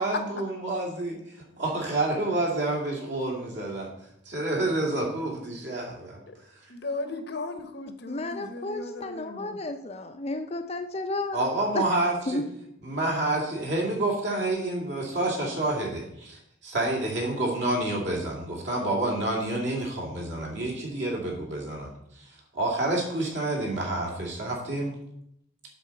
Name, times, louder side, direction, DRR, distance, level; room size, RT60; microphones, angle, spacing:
voice 1, 0.0-3.9 4.3-6.2 11.3-12.4 12.8-21.9 22.1-22.3 22.5-24.9, right 2 dB, 60° right, -1 dB, 2.5 m, -28 dB
voice 2, 6.7-9.5, left 2 dB, 55° left, 8 dB, 0.9 m, -36 dB
voice 3, 7.9-11.4 11.7-11.8 12.3-12.4, left 2 dB, 30° left, 7 dB, 0.5 m, -32 dB
7.8 x 4.2 x 6.8 m, 0.76 s
head